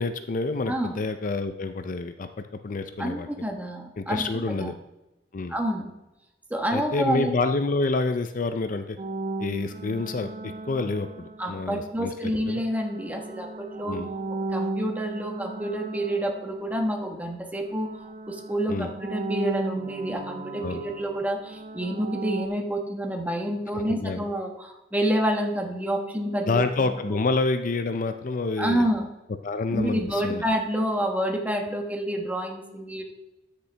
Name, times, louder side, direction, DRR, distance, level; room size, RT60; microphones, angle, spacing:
voice 1, 0.0-3.3 4.0-4.7 5.3-5.6 6.7-9.0 9.4-12.6 13.8-14.1 18.7-18.9 20.6-20.8 23.9-24.2 26.5-28.9 29.4-30.4, left 3 dB, 50° left, 9 dB, 0.5 m, -28 dB
voice 2, 3.0-4.7 5.5-5.9 6.5-7.3 11.4-14.0 14.5-17.9 18.3-26.6 26.9-27.0 28.6-29.1 29.7-33.0, equal, 10° right, 2 dB, 1.3 m, -28 dB
sound 1, 9.0-11.9 12.6-17.4 17.6-22.5, right 2 dB, 40° right, 0.6 m, -35 dB
13.0 x 6.8 x 3.4 m, 0.98 s
head